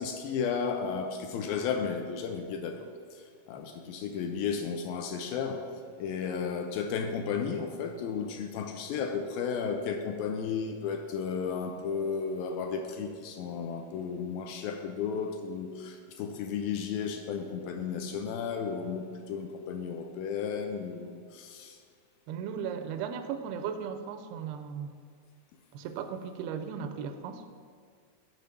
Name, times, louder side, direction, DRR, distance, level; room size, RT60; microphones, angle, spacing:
voice 1, 0.0-2.9 3.5-5.6 6.0-21.8, left 6 dB, 80° left, 5 dB, 2.1 m, -33 dB
voice 2, 22.3-24.9 25.7-27.4, right 7 dB, 85° right, 8 dB, 2.6 m, -36 dB
7.3 x 5.1 x 6.8 m, 2.1 s
omnidirectional pair, 4.4 m